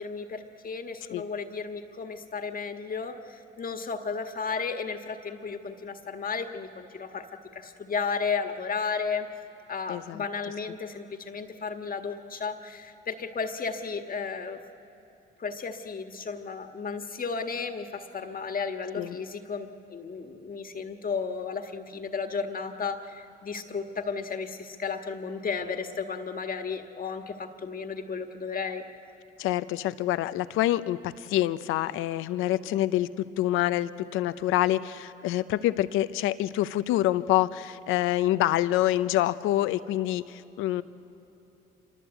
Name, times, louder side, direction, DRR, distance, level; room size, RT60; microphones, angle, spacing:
voice 1, 0.0-7.3 7.5-9.3 9.7-14.6 15.4-28.8, left 5 dB, 45° left, 6 dB, 1.6 m, -34 dB
voice 2, 9.9-10.3 19.0-19.2 29.4-40.8, left 14 dB, 90° left, 14 dB, 0.7 m, -26 dB
26.5 x 23.0 x 8.1 m, 3.0 s
supercardioid pair, 70°, 20 cm